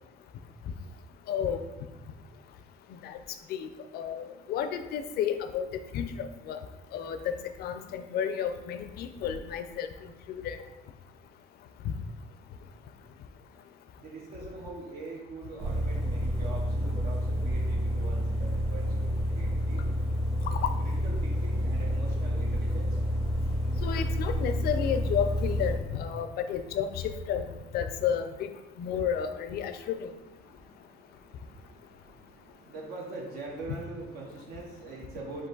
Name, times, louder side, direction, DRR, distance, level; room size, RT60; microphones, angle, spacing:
voice 1, 1.3-1.6 3.0-3.2 3.5-3.7 3.9-5.7 5.9-6.6 6.9-7.2 7.6-9.9 10.3-10.6 11.8-11.9 20.6-20.7 23.8-27.5 27.7-28.2 28.8-30.0, left 8 dB, 65° left, 9 dB, 0.4 m, -31 dB
voice 2, 14.0-19.9 20.8-23.0 28.8-29.1 29.7-29.9 30.4-35.5, right 3 dB, 70° right, -1 dB, 0.8 m, -43 dB
sound 1, 15.6-25.7, equal, 35° right, 1.2 m, -29 dB
4.7 x 2.6 x 3.9 m, 1.1 s
cardioid pair, 110°, 17 cm